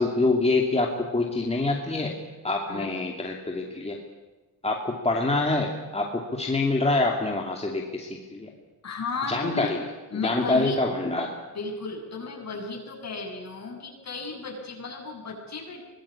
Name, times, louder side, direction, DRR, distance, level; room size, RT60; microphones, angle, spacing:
voice 1, 0.0-2.1 2.4-4.0 4.6-8.5 9.3-9.8 10.2-11.3, left 2 dB, 15° left, 0 dB, 2.8 m, -26 dB
voice 2, 8.8-9.7 10.1-10.8 11.5-15.8, left 4 dB, 45° left, 2 dB, 7.6 m, -34 dB
24.0 x 19.5 x 8.6 m, 1.2 s
cardioid pair, 110°, 39 cm